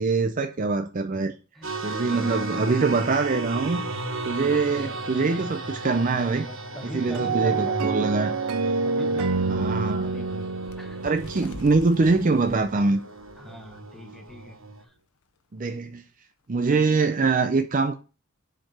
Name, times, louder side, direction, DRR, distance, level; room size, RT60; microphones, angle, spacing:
voice 1, 0.0-1.3 1.8-3.8 4.3-6.5 6.9-8.3 9.5-10.1 11.0-13.0 15.5-16.0 16.5-17.9, right 3 dB, 40° right, 0.5 m, -23 dB
sound 1, 1.6-14.8, right 3 dB, 65° right, 1.4 m, -35 dB
voice 2, 4.6-5.2 6.4-7.8 8.8-10.5 10.8-11.1 11.4-11.5 13.3-14.9, equal, ahead, 1.4 m, -42 dB
sound 2, 7.1-12.3, right 4 dB, 85° right, 0.5 m, -28 dB
Bird, 10.6-13.8 14.3-14.4 14.7-15.0 15.8-15.9, left 2 dB, 75° left, 0.9 m, -45 dB
7.5 x 4.6 x 6.2 m
head